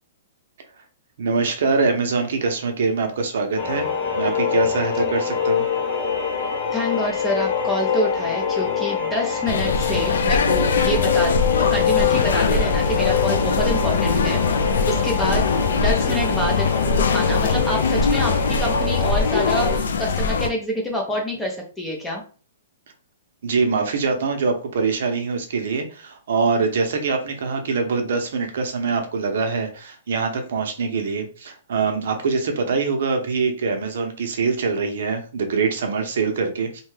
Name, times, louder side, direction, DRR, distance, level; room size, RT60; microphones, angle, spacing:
voice 1, 1.2-3.9 4.2-5.7 23.4-36.8, right 4 dB, 60° right, 4 dB, 0.6 m, -24 dB
sound 1, 3.6-19.8, left 6 dB, 40° left, 0.7 m, -24 dB
voice 2, 6.7-14.4 14.9-16.7 17.1-22.2, equal, 5° left, 0 dB, 0.5 m, -27 dB
sound 2, 9.5-20.5, left 4 dB, 75° left, 0.4 m, -22 dB
2.7 x 2.2 x 3.1 m, 0.38 s
hypercardioid pair, 170°, 0 cm